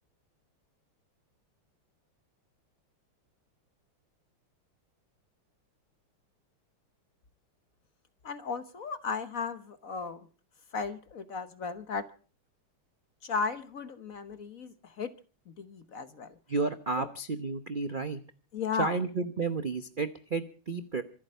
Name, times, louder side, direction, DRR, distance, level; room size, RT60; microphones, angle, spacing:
voice 1, 8.2-10.3 10.7-12.0 13.2-15.1 15.5-16.3 17.0-17.1 18.5-19.0, left 5 dB, 50° left, 1.2 m, -35 dB
voice 2, 16.5-18.2 18.8-21.0, right 4 dB, 65° right, 0.5 m, -32 dB
26.0 x 8.7 x 5.5 m
omnidirectional pair, 2.4 m